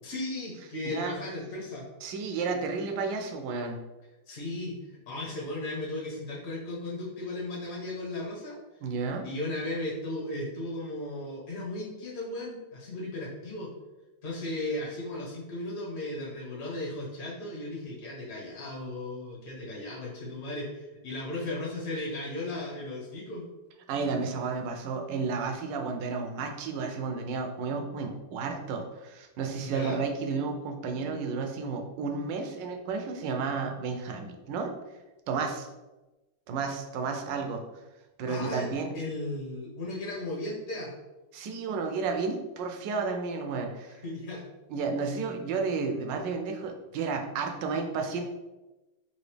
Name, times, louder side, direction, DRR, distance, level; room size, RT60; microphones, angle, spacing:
voice 1, 0.0-1.8 4.3-8.6 9.2-13.7 14.2-23.5 29.6-30.0 38.3-40.9 44.0-44.4, left 2 dB, 50° left, -4 dB, 1.5 m, -36 dB
voice 2, 0.8-1.2 2.0-3.8 8.8-9.3 23.9-34.7 35.3-35.7 36.5-37.6 38.2-38.9 41.3-44.0 44.7-48.3, right 4 dB, 75° right, 4 dB, 1.2 m, -32 dB
4.0 x 2.7 x 3.2 m, 1.1 s
omnidirectional pair, 2.1 m